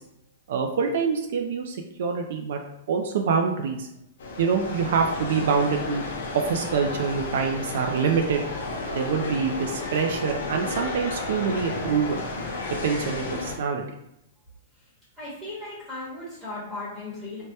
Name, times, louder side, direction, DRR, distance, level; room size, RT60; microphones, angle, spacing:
voice 1, 0.5-2.6 2.9-3.9 4.4-6.0 6.3-8.5 8.9-12.2 12.8-13.8, right 6 dB, 60° right, 3 dB, 0.3 m, -25 dB
sound 1, 4.2-13.5, left 3 dB, 80° left, 0.7 m, -32 dB
voice 2, 15.2-17.4, left 2 dB, 5° right, -8 dB, 1.0 m, -36 dB
3.3 x 2.1 x 2.7 m, 0.82 s
supercardioid pair, 165°, 0 cm